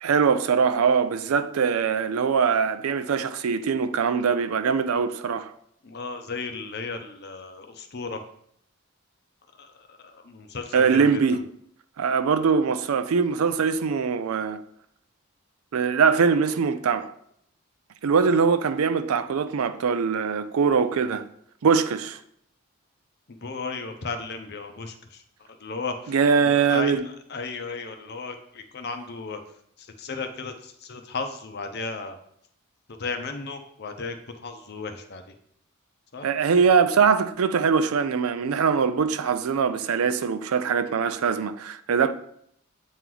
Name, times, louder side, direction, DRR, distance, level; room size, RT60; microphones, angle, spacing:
voice 1, 0.0-5.5 10.7-11.4 12.0-14.6 15.7-17.1 18.0-21.3 21.6-22.2 26.1-27.1 36.2-42.1, right 6 dB, 85° right, 0.4 m, -22 dB
voice 2, 5.8-8.2 9.9-10.0 10.3-11.2 23.4-24.9 25.6-26.1 26.7-26.9 27.3-29.4 30.0-32.2 33.0-34.2 34.4-35.2 36.1-36.3, left 4 dB, 50° left, 0.6 m, -34 dB
8.2 x 3.0 x 3.8 m
head